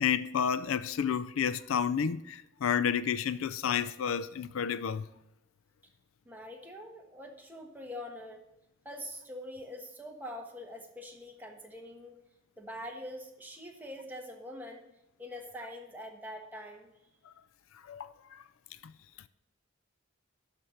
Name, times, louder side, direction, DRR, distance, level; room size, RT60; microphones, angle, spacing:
voice 1, 0.0-5.1 17.8-18.4 18.8-18.9, left 7 dB, 85° left, 0.4 m, -31 dB
voice 2, 6.2-8.4 8.8-12.2 12.6-14.8 15.2-16.9, left 1 dB, 10° right, 1.3 m, -44 dB
12.0 x 4.4 x 6.7 m
head